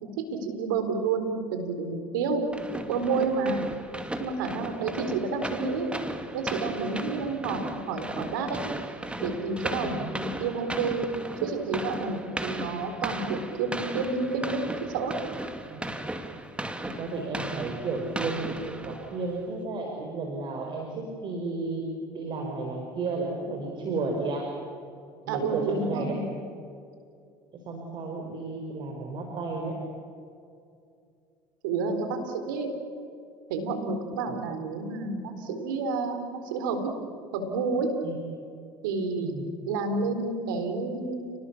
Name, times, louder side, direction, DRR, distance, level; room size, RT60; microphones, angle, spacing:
voice 1, 0.0-2.4 2.9-3.7 4.2-5.9 6.3-8.6 9.2-11.0 11.4-15.1 25.3-26.3 31.6-32.7 33.5-36.9 37.3-37.9 38.8-39.4 39.7-41.5, right 4 dB, 85° right, 7 dB, 4.1 m, -30 dB
sound 1, 2.5-19.3, right 1 dB, 10° right, 2.4 m, -36 dB
voice 2, 16.8-21.8 22.1-24.5 25.2-26.1 27.6-29.8 38.0-38.2 39.2-39.5, right 3 dB, 50° right, 1 dB, 5.1 m, -33 dB
30.0 x 20.0 x 7.3 m, 2.4 s
hypercardioid pair, 85°, 11 cm